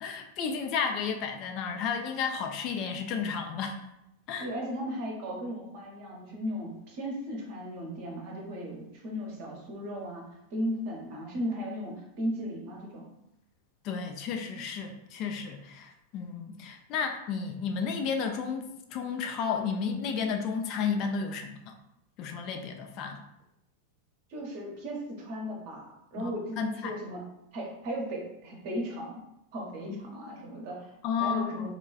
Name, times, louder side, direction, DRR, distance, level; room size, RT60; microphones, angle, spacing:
voice 1, 0.0-3.8 4.3-4.5 13.8-21.7 22.2-23.2 26.2-26.9 29.9-30.0 31.0-31.7, left 6 dB, 40° left, 5 dB, 0.3 m, -32 dB
voice 2, 4.4-10.2 10.5-13.1 24.3-27.2 27.5-29.2 29.5-30.9 31.2-31.7, equal, 45° right, -1 dB, 0.8 m, -36 dB
3.5 x 2.2 x 2.3 m, 0.85 s
figure-of-eight pair, 90°, 0 cm